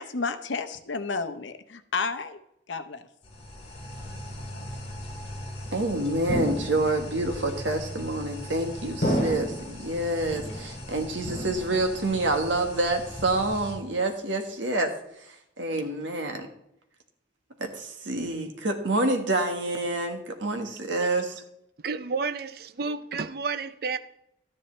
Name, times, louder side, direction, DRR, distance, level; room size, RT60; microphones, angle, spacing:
voice 1, 0.0-2.4 2.7-3.1, left 4 dB, 85° left, 0.8 m, -31 dB
sound 1, 3.2-13.7, left 1 dB, 30° left, 2.3 m, -40 dB
voice 2, 5.7-14.9 15.2-16.5 17.6-21.4, right 2 dB, 90° right, 1.5 m, -27 dB
sound 2, 6.3-7.1 8.0-8.5 9.0-9.8 10.3-10.9 11.2-12.0 12.3-12.8 13.2-13.8, equal, 50° left, 2.8 m, -32 dB
voice 3, 21.8-24.0, right 4 dB, 55° right, 0.5 m, -31 dB
12.5 x 10.0 x 3.2 m
head